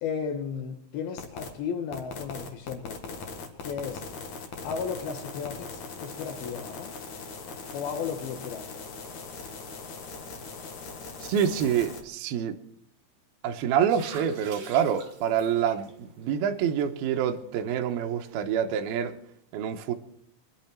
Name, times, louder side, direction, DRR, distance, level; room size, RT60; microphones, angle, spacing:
voice 1, 0.0-3.3 3.6-4.1 4.6-7.0 7.7-8.9, left 6 dB, 80° left, 2.2 m, -34 dB
sound 1, 1.2-1.5 1.9-12.0, left 4 dB, 60° left, 2.1 m, -40 dB
voice 2, 11.3-12.5 13.4-19.1 19.5-19.9, right 8 dB, 85° right, 2.2 m, -27 dB
sound 2, 13.5-19.1, right 3 dB, 50° right, 3.3 m, -47 dB
24.5 x 11.5 x 4.5 m
omnidirectional pair, 5.9 m